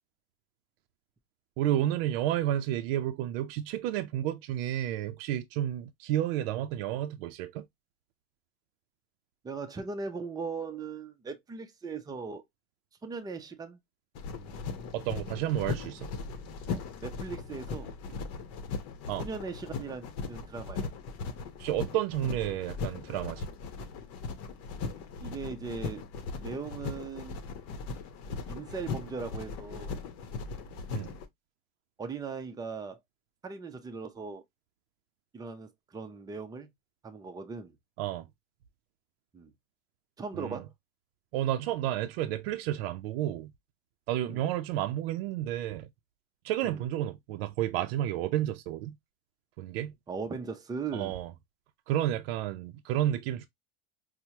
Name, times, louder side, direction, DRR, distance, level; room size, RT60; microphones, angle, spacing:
voice 1, 1.6-7.7 14.9-16.1 19.1-19.2 21.6-23.5 30.9-31.1 38.0-38.3 40.3-40.6 41.3-43.5 44.1-45.9 46.4-49.0 49.6-49.9 50.9-51.3 51.9-53.5, right 12 dB, 75° right, 0.5 m, -31 dB
voice 2, 9.4-12.4 13.0-13.8 16.7-17.9 19.2-20.9 25.2-26.0 26.4-27.4 28.5-29.9 32.0-33.0 33.4-34.4 35.3-36.7 37.0-37.7 39.3-39.5 40.2-40.7 44.2-44.4 46.6-46.8 50.1-51.2, right 4 dB, 10° right, 0.6 m, -39 dB
sound 1, 14.2-31.3, left 4 dB, 55° left, 0.8 m, -38 dB
4.4 x 2.1 x 2.7 m
supercardioid pair, 110°, 30 cm